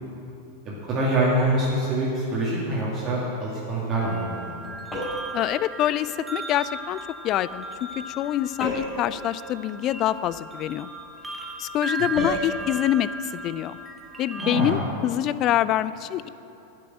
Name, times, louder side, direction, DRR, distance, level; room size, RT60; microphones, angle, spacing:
voice 1, 0.7-4.5 14.4-14.8, right 1 dB, 30° right, -6 dB, 2.3 m, -25 dB
sound 1, 3.9-14.7, right 2 dB, 10° right, 1.4 m, -37 dB
sound 2, 4.9-5.4 8.6-9.1 12.2-12.5, left 1 dB, 15° left, 3.0 m, -30 dB
voice 2, 5.3-7.7 8.1-10.9 11.6-13.8 14.2-16.3, left 12 dB, 35° left, 17 dB, 0.3 m, -25 dB
10.5 x 7.5 x 7.7 m, 2.9 s
figure-of-eight pair, 90°, 0 cm